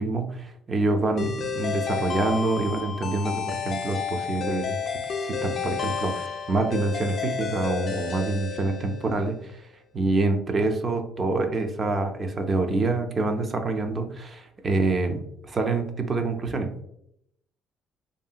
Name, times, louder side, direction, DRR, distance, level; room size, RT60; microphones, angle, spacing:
voice 1, 0.0-4.8 5.0-9.6 9.9-16.9, right 3 dB, 30° right, 6 dB, 0.4 m, -26 dB
sound 1, 1.2-9.3, left 7 dB, 45° left, 0.3 m, -31 dB
2.7 x 2.7 x 2.3 m, 0.75 s
cardioid pair, 120°, 0 cm